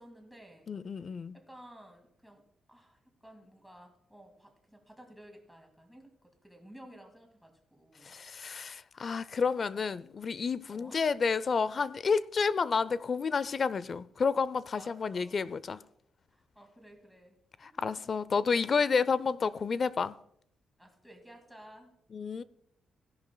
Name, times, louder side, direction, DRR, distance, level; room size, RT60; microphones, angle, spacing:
voice 1, 0.0-0.7 1.3-2.4 2.7-8.1 10.7-11.1 14.7-15.4 16.3-17.7 18.3-18.5 20.8-21.9, right 1 dB, ahead, 2.0 m, -54 dB
voice 2, 0.7-1.4 8.0-15.8 17.6-20.2 22.1-22.4, left 5 dB, 40° left, 0.4 m, -30 dB
17.0 x 10.5 x 2.2 m
cardioid pair, 135°, 0 cm